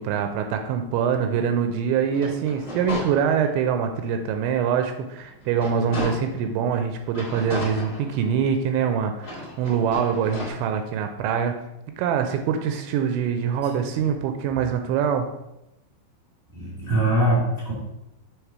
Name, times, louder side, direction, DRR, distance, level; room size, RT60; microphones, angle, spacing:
voice 1, 0.0-11.6 12.0-15.3, right 7 dB, 85° right, 6 dB, 2.8 m, -24 dB
sound 1, 2.0-3.7 4.2-4.3 4.7-6.5 7.1-8.6 9.1-10.5, left 1 dB, 55° left, 1.0 m, -35 dB
voice 2, 16.5-17.7, right 1 dB, 30° left, -8 dB, 1.5 m, -22 dB
7.2 x 3.4 x 4.7 m, 0.90 s
omnidirectional pair, 5.3 m